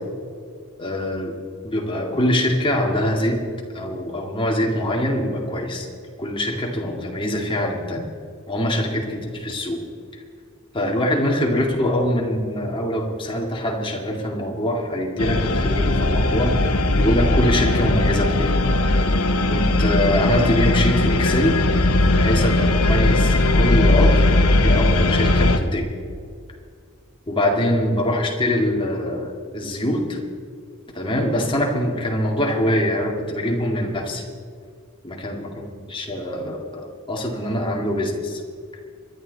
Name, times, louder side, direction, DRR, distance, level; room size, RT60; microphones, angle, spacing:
voice 1, 0.8-1.3 1.6-3.4 3.7-5.9 6.2-8.1 8.5-9.8 10.7-16.6 17.0-18.5 19.5-21.6 22.1-25.9 27.3-30.2 30.9-34.2 35.0-38.4, left 1 dB, 25° left, 0 dB, 2.2 m, -23 dB
sound 1, 15.2-25.6, left 2 dB, 85° left, 1.1 m, -18 dB
26.0 x 11.5 x 4.1 m, 2.2 s
head